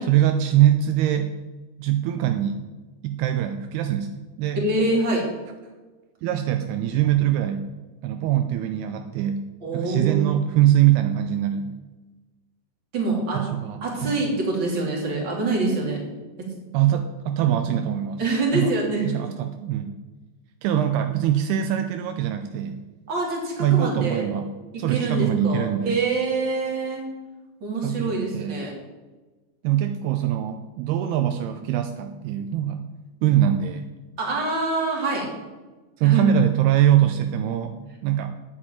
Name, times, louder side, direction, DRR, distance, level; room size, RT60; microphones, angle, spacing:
voice 1, 0.1-1.3 1.8-2.7 3.0-4.6 6.2-7.7 8.0-11.8 13.3-14.3 16.7-18.2 18.5-18.7 19.1-20.0 20.6-22.8 23.6-24.5 24.8-26.0 27.8-28.7 29.6-32.9 33.2-33.9 36.0-37.8 38.0-38.4, right 11 dB, 85° right, 7 dB, 2.3 m, -23 dB
voice 2, 4.5-5.3 9.6-10.3 12.9-13.4 13.8-16.0 16.4-16.5 18.2-19.0 23.1-24.3 24.7-27.0 27.6-28.7 34.2-35.3 36.0-36.2, right 2 dB, 30° right, -2 dB, 3.0 m, -25 dB
8.6 x 7.6 x 8.8 m, 1.2 s
omnidirectional pair, 5.2 m